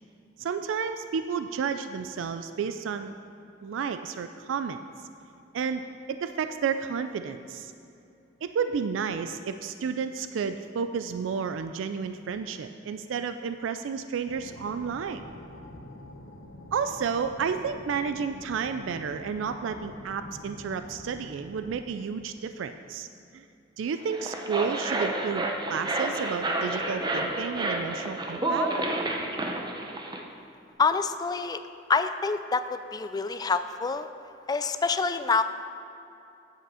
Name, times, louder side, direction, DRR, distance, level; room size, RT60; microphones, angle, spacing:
voice 1, 0.4-3.1 3.6-4.8 5.5-5.8 6.1-7.7 8.4-15.2 16.7-23.1 23.3-23.4 23.8-28.7, right 6 dB, 85° right, 9 dB, 0.3 m, -31 dB
sound 1, 14.3-21.8, left 1 dB, 85° left, 0.8 m, -46 dB
sound 2, 24.0-30.2, right 2 dB, 25° right, 0.7 m, -30 dB
voice 2, 30.8-31.6 31.9-34.1 34.5-35.4, left 4 dB, 20° left, 10 dB, 0.3 m, -26 dB
9.3 x 7.5 x 4.8 m, 2.7 s
head